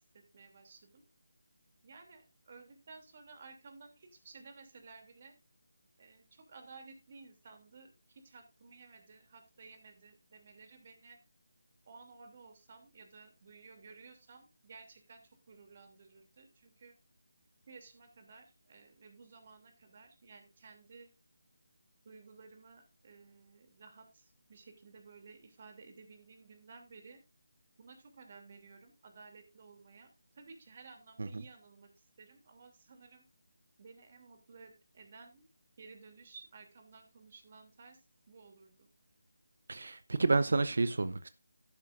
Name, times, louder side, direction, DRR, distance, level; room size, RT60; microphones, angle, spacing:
voice 1, 0.1-1.0 1.8-5.3 6.0-11.2 11.9-16.9 17.7-21.1 22.0-27.2 27.8-30.1 30.3-31.9 32.2-33.2 33.8-35.5 35.8-38.0 38.3-38.8, right 4 dB, 40° right, 2.8 m, -55 dB
voice 2, 39.7-41.3, right 3 dB, 65° right, 0.8 m, -30 dB
12.0 x 10.5 x 2.6 m
figure-of-eight pair, 165°, 0 cm